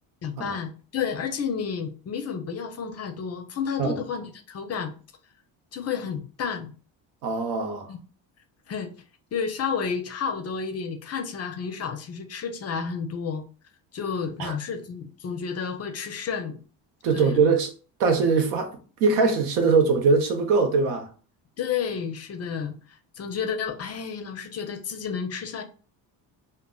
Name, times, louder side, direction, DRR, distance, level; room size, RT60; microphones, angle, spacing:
voice 1, 0.2-4.9 5.7-6.7 7.9-8.0 8.7-8.9 9.3-13.4 13.9-16.6 17.1-17.4 21.6-25.6, left 6 dB, 35° left, 0.4 m, -31 dB
voice 2, 7.2-7.9 14.4-14.5 17.0-17.7 18.0-18.7 19.0-21.1, right 4 dB, 90° right, 0.7 m, -21 dB
2.1 x 2.0 x 3.6 m
cardioid pair, 95°, 45 cm